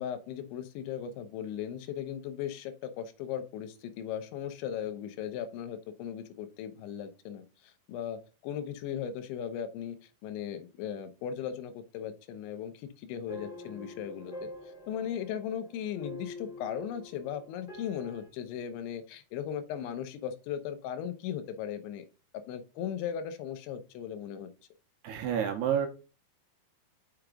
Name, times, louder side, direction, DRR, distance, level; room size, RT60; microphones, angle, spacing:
voice 1, 0.0-10.0 10.2-14.5 14.9-22.0 22.5-24.5, left 9 dB, 80° left, 10 dB, 3.1 m, -37 dB
sound 1, 13.3-18.3, left 2 dB, 20° left, 2.7 m, -46 dB
voice 2, 25.0-25.9, right 8 dB, 75° right, 5 dB, 2.7 m, -29 dB
6.4 x 5.9 x 3.7 m, 0.32 s
omnidirectional pair, 5.3 m